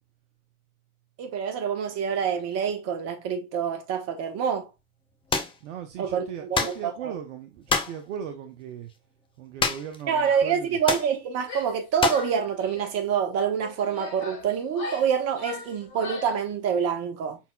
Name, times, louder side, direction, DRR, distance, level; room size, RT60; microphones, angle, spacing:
voice 1, 1.2-4.7 6.0-7.2 10.1-17.4, right 7 dB, 35° right, 1.2 m, -26 dB
sound 1, 5.3-5.6 6.5-6.8 7.7-8.0 9.6-10.0 10.3-10.4 10.9-11.1 12.0-12.3, left 4 dB, 10° left, 0.6 m, -26 dB
voice 2, 5.6-8.9 9.4-10.8, right 8 dB, 55° right, 0.9 m, -38 dB
Female speech woman speaking / Yell, 11.4-11.8 12.1-13.0 13.6-16.4, left 3 dB, 40° left, 2.6 m, -39 dB
5.4 x 4.3 x 2.2 m
hypercardioid pair, 100°, 44 cm